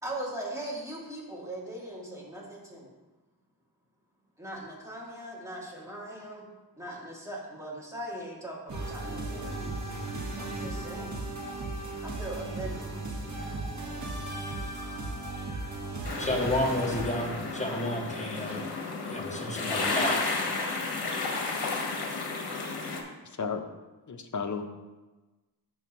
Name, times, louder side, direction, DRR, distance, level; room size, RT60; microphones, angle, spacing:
voice 1, 0.0-2.9 4.4-6.5 6.8-9.8 10.4-11.2 12.0-12.9, right 1 dB, 5° right, 2.7 m, -40 dB
sound 1, 8.7-17.0, right 2 dB, 40° right, 1.7 m, -36 dB
sound 2, 16.0-23.0, left 3 dB, 65° left, 1.4 m, -32 dB
voice 2, 16.2-18.6 19.0-20.3, left 1 dB, 15° left, 1.7 m, -31 dB
voice 3, 23.2-23.6 24.1-24.6, left 5 dB, 45° left, 0.9 m, -33 dB
13.0 x 4.5 x 3.2 m
cardioid pair, 60°, 42 cm